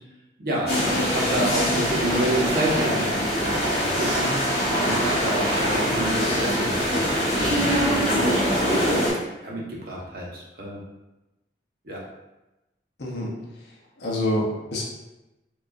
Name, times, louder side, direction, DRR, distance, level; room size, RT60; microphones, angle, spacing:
voice 1, 0.4-3.7 4.0-4.4 4.8-7.1 7.4-7.7 9.4-10.8 11.8-12.0, right 1 dB, 55° right, -3 dB, 0.9 m, -29 dB
sound 1, 0.7-9.1, equal, 35° left, 1.5 m, -23 dB
voice 2, 13.0-13.3 14.0-14.8, left 1 dB, 70° left, -3 dB, 0.8 m, -26 dB
4.7 x 2.4 x 2.6 m, 1.0 s
head